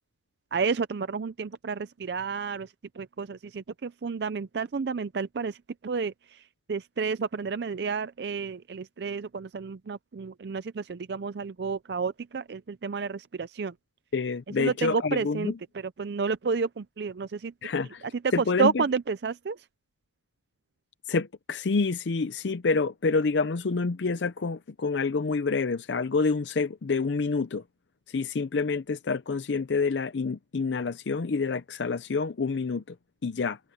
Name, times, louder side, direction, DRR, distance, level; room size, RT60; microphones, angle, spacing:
voice 1, 0.5-5.6 5.8-6.4 6.7-13.7 14.6-17.5 18.1-19.6, right 5 dB, 65° right, 0.5 m, -31 dB
voice 2, 14.1-15.5 17.6-18.0 18.3-18.8 21.1-27.6 28.1-32.8 33.2-33.6, left 4 dB, 85° left, 0.6 m, -27 dB
head